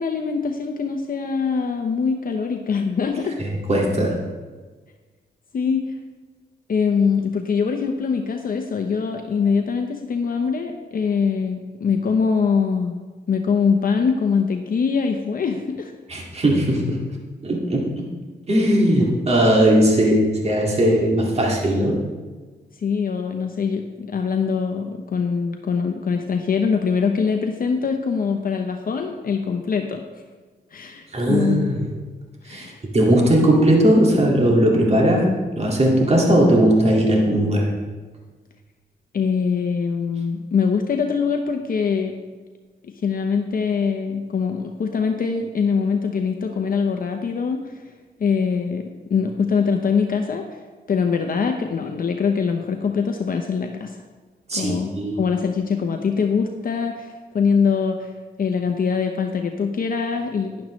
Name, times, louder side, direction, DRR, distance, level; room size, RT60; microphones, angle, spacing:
voice 1, 0.0-3.4 5.5-5.9 6.7-13.0 13.3-15.9 22.8-30.0 30.7-31.7 32.5-32.8 39.1-42.2 43.0-47.7 48.2-50.6 50.9-54.0 54.5-58.1 58.4-60.5, left 5 dB, 55° left, 4 dB, 0.8 m, -23 dB
voice 2, 3.4-4.2 16.1-17.0 17.4-18.1 18.5-22.0 31.1-31.9 32.5-32.7 32.9-37.8 54.5-55.2, right 1 dB, 35° right, -2 dB, 2.1 m, -18 dB
11.5 x 10.5 x 3.2 m, 1.4 s
cardioid pair, 95°, 18 cm